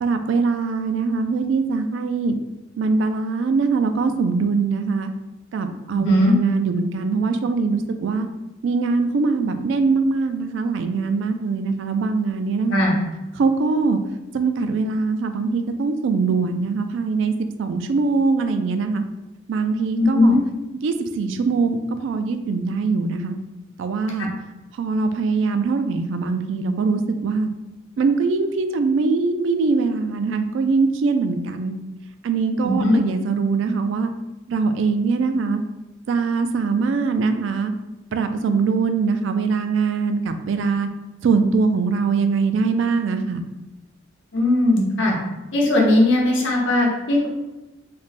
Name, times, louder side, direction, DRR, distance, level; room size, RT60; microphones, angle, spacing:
voice 1, 0.0-2.4 2.8-5.1 5.5-8.3 8.6-12.8 13.3-14.0 14.3-17.3 17.6-19.0 19.5-20.4 20.8-23.4 23.8-24.3 24.8-27.5 28.0-31.7 32.2-34.1 34.5-35.6 36.1-37.7 38.1-40.9 41.2-43.4, right 4 dB, 70° right, 8 dB, 0.3 m, -22 dB
voice 2, 20.0-20.4 32.6-33.0 44.3-45.1 45.5-47.3, left 1 dB, 70° left, -2 dB, 0.9 m, -18 dB
3.3 x 2.1 x 4.0 m, 1.0 s
head